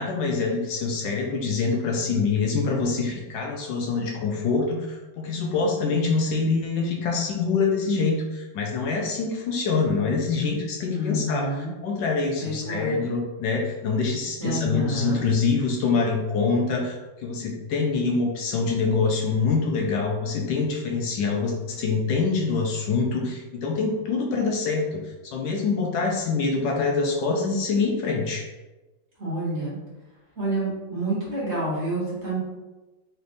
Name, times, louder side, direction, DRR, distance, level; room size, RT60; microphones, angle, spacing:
voice 1, 0.0-11.5 11.8-28.4, left 4 dB, 75° left, 0 dB, 1.2 m, -25 dB
voice 2, 10.9-11.7 12.4-13.0 14.4-15.3 29.2-29.8 30.4-32.4, right 1 dB, 40° right, -7 dB, 1.3 m, -28 dB
4.2 x 3.3 x 2.6 m, 1.1 s
omnidirectional pair, 2.0 m